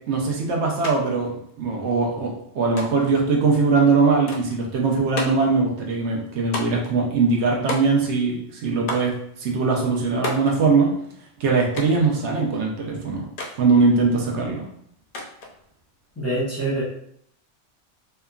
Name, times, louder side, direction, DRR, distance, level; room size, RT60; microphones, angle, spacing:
voice 1, 0.1-1.3 1.6-10.9 11.4-13.3 13.6-14.6, right 4 dB, 75° right, 0 dB, 0.9 m, -21 dB
sound 1, 0.8-1.0 1.2-2.0 2.8-3.2 4.3-4.6 5.2-5.5 6.5-6.9 7.7-8.2 8.9-9.2 10.2-10.6 11.8-12.1 13.4-13.6 15.1-15.5, left 2 dB, 55° left, 0.6 m, -32 dB
voice 2, 16.2-16.8, right 2 dB, 15° left, -8 dB, 0.6 m, -25 dB
2.8 x 2.2 x 2.3 m, 0.69 s
omnidirectional pair, 1.2 m